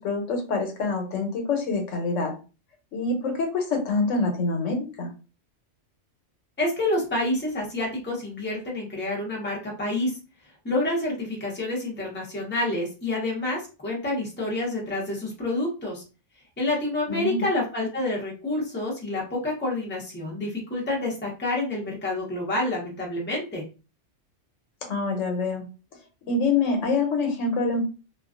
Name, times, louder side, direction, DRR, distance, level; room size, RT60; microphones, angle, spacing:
voice 1, 0.0-2.3 2.9-5.1 17.1-17.4 24.9-25.6 26.3-27.8, left 3 dB, 85° left, 3 dB, 1.1 m, -26 dB
voice 2, 6.6-10.1 10.6-16.0 16.6-23.6, left 2 dB, 10° left, -2 dB, 0.6 m, -28 dB
2.4 x 2.2 x 2.4 m, 0.33 s
omnidirectional pair, 1.2 m